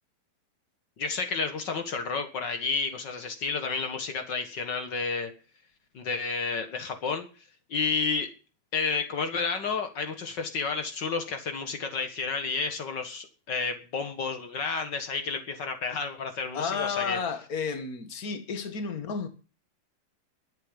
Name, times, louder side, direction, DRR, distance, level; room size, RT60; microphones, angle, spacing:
voice 1, 1.0-5.3 5.9-8.3 8.7-17.2, left 5 dB, 90° left, 0.9 m, -31 dB
voice 2, 16.5-19.3, left 5 dB, 50° left, 1.0 m, -32 dB
22.0 x 8.7 x 5.3 m
omnidirectional pair, 4.5 m